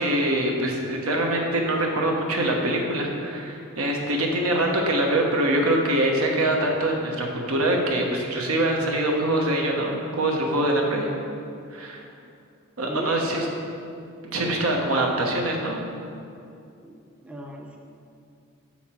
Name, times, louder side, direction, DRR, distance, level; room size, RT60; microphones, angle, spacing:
voice 1, 0.0-11.1 11.7-12.0 12.8-13.5 14.2-15.8, right 1 dB, 80° right, 0 dB, 1.1 m, -24 dB
voice 2, 12.9-13.7 14.4-14.9 16.8-17.8, right 1 dB, 5° right, 0 dB, 0.4 m, -37 dB
7.2 x 5.8 x 4.3 m, 2.5 s
head